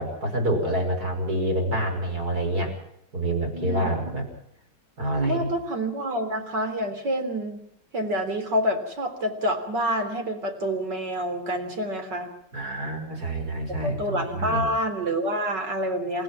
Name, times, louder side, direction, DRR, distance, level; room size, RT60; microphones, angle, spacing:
voice 1, 0.0-2.7 3.1-4.2 5.0-5.5 12.5-14.7, right 1 dB, 60° right, 3 dB, 6.3 m, -27 dB
voice 2, 3.5-4.2 5.2-7.6 7.9-12.3 13.7-16.2, equal, 85° right, 6 dB, 4.3 m, -28 dB
29.5 x 15.5 x 6.1 m, 0.76 s
omnidirectional pair, 1.8 m